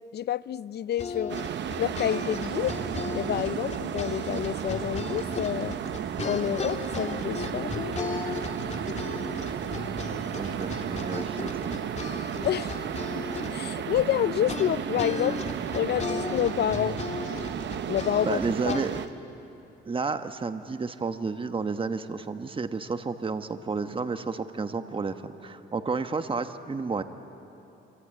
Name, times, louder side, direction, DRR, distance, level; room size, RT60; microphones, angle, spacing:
voice 1, 0.0-1.4 1.8-2.8 3.1-5.8 6.2-8.0 12.4-12.8 13.5-15.4 15.7-17.0 17.9-18.4 18.7-18.9, left 11 dB, 55° left, 19 dB, 0.5 m, -28 dB
sound 1, 1.0-19.1, left 4 dB, 35° left, 2.4 m, -36 dB
sound 2, 1.3-19.1, right 10 dB, 65° right, 0.9 m, -33 dB
voice 2, 10.4-11.7 18.2-19.0 19.9-27.0, right 4 dB, 25° right, 9 dB, 1.2 m, -31 dB
26.0 x 25.0 x 8.9 m, 2.9 s
cardioid pair, 90°, 20 cm